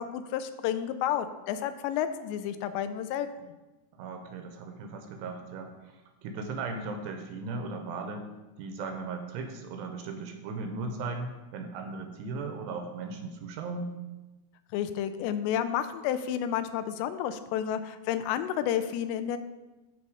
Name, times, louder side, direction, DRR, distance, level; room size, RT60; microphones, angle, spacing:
voice 1, 0.0-3.5 14.7-19.4, left 10 dB, 85° left, 11 dB, 2.7 m, -31 dB
voice 2, 3.9-8.3 8.6-13.9, right 3 dB, 80° right, 5 dB, 2.8 m, -37 dB
12.0 x 4.1 x 4.8 m, 1.1 s
omnidirectional pair, 5.0 m